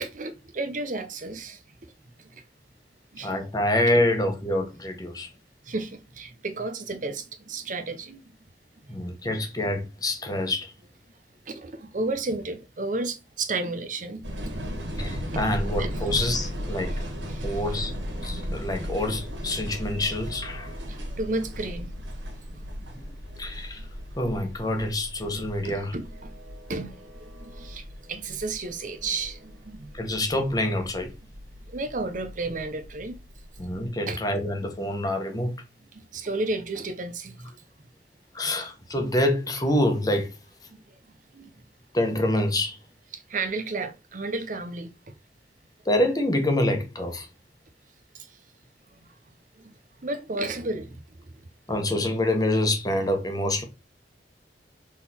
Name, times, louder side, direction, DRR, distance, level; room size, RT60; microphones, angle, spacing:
voice 1, 0.0-1.6 2.2-2.4 3.1-3.3 5.6-8.2 11.5-14.6 14.9-15.5 15.8-15.9 16.9-17.0 17.3-17.6 20.9-21.9 22.5-22.7 25.3-26.4 26.7-29.9 31.7-33.2 33.6-33.7 34.1-34.2 35.9-37.5 41.3-41.5 43.1-45.1 48.1-48.3 49.6-49.7 50.0-51.0, right 3 dB, 45° right, 0.7 m, -33 dB
voice 2, 3.2-5.3 8.9-10.7 15.0-17.0 17.4-18.0 18.2-20.8 22.9-23.0 23.4-23.9 24.2-25.9 29.9-31.1 33.6-35.6 38.3-40.4 41.9-42.8 45.8-47.3 51.7-53.6, left 1 dB, 20° left, 1.2 m, -26 dB
sound 1, 14.2-33.9, equal, 90° right, 1.9 m, -36 dB
6.4 x 3.7 x 4.2 m
head